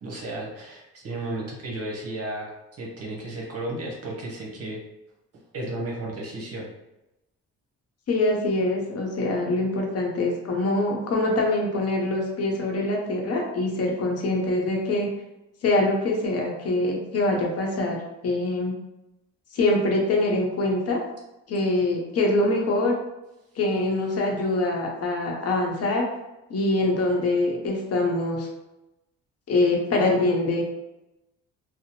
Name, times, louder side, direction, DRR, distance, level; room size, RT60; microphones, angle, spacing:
voice 1, 0.0-2.5 2.8-4.8 5.5-6.7, right 1 dB, 50° right, -3 dB, 0.8 m, -33 dB
voice 2, 8.1-15.1 15.6-18.0 18.2-18.7 19.5-21.0 21.5-23.0 23.6-26.1 26.5-28.5 29.5-30.6, left 2 dB, 55° left, 0 dB, 0.8 m, -24 dB
2.7 x 2.0 x 2.8 m, 0.94 s
cardioid pair, 90°, 30 cm